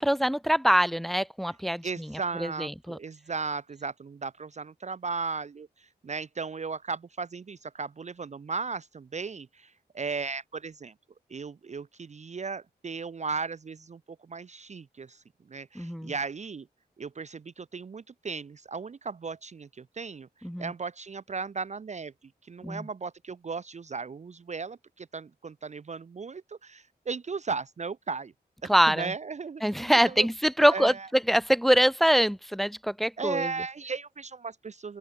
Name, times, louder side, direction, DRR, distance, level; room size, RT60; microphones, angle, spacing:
voice 1, 0.0-3.0 15.7-16.1 20.4-20.7 22.6-22.9 28.7-29.1 29.6-33.5, equal, ahead, 0.8 m, -24 dB
voice 2, 1.8-10.9 11.3-16.7 17.0-22.1 22.4-28.3 28.6-29.6 30.1-30.3 30.7-31.1 33.2-35.0, right 4 dB, 40° right, 0.5 m, -36 dB
open air
cardioid pair, 40°, 19 cm